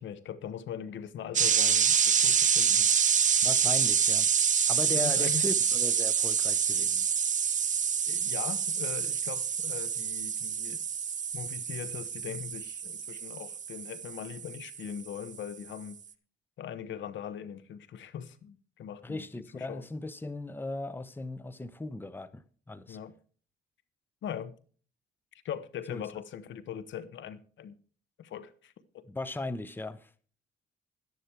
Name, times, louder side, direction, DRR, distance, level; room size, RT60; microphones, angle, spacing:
voice 1, 0.0-2.9 3.6-3.7 4.9-5.5 8.1-10.8 11.3-16.0 16.6-19.3 19.5-19.9 22.9-23.1 24.2-24.5 25.3-27.8 28.2-29.0, left 9 dB, 70° left, 1.0 m, -41 dB
sound 1, 1.3-14.9, right 7 dB, 40° right, 0.8 m, -27 dB
voice 2, 3.4-4.3 4.7-7.1 19.0-23.0 25.9-26.0 29.1-30.1, left 2 dB, 10° left, 0.8 m, -37 dB
11.5 x 10.0 x 4.7 m
cardioid pair, 90°, 20 cm